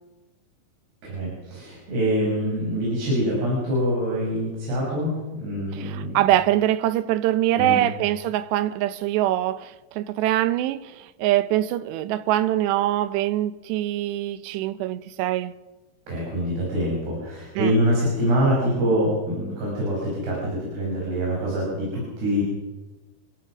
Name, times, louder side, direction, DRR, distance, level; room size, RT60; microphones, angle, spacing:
voice 1, 1.0-5.1 5.4-6.2 7.6-7.8 16.1-22.4, equal, 70° right, 7.9 m, -25 dB
voice 2, 5.7-15.5 17.6-17.7, right 14 dB, 90° right, 3.1 m, -23 dB
28.5 x 16.5 x 6.1 m
omnidirectional pair, 4.9 m